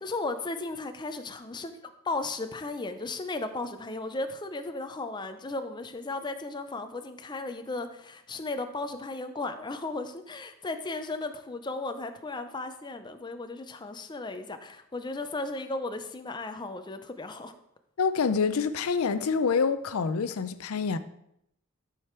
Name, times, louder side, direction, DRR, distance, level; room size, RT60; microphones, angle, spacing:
voice 1, 0.0-1.7 2.0-17.5, left 2 dB, 20° left, 0.5 m, -35 dB
voice 2, 18.0-21.0, left 5 dB, 70° left, 0.5 m, -26 dB
12.0 x 5.0 x 4.4 m
head